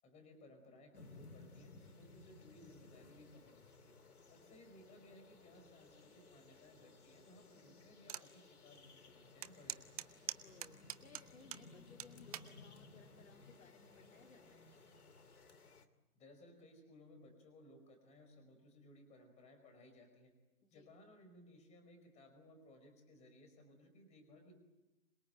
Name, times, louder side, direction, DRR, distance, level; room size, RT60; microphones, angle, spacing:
voice 1, 0.0-3.9 4.3-10.1 16.1-20.3 20.7-24.6, left 1 dB, 15° left, 6 dB, 4.8 m, -61 dB
sound 1, 0.9-15.9, left 3 dB, 80° left, 2.8 m, -60 dB
sound 2, 8.1-8.3 8.7-8.8 9.4-11.6 12.0-12.5 13.2-13.5, right 12 dB, 25° right, 0.9 m, -44 dB
voice 2, 10.4-14.7 20.6-20.9, left 4 dB, 60° left, 3 dB, 3.8 m, -62 dB
27.0 x 21.0 x 8.9 m, 1.1 s
hypercardioid pair, 145°, 44 cm